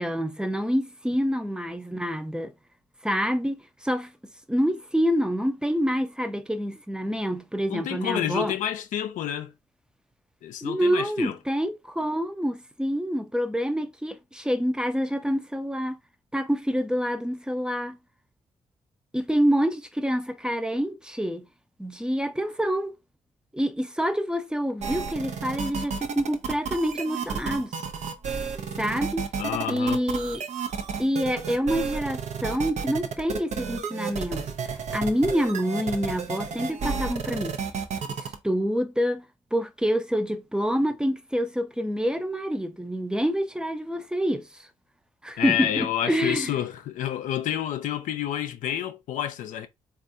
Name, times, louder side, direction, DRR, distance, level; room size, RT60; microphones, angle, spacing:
voice 1, 0.0-2.5 3.0-4.1 4.5-8.5 10.6-16.0 16.3-18.0 19.1-21.5 21.8-23.0 23.5-27.7 28.8-29.3 29.7-30.4 31.0-37.6 38.1-39.2 39.5-44.7 45.2-46.5, equal, 5° right, 0.6 m, -27 dB
voice 2, 7.7-9.5 10.4-11.4 29.4-30.0 45.4-49.7, left 11 dB, 75° left, 0.4 m, -29 dB
sound 1, 24.8-38.3, right 5 dB, 60° right, 0.6 m, -32 dB
3.4 x 2.4 x 2.6 m
supercardioid pair, 50°, 13 cm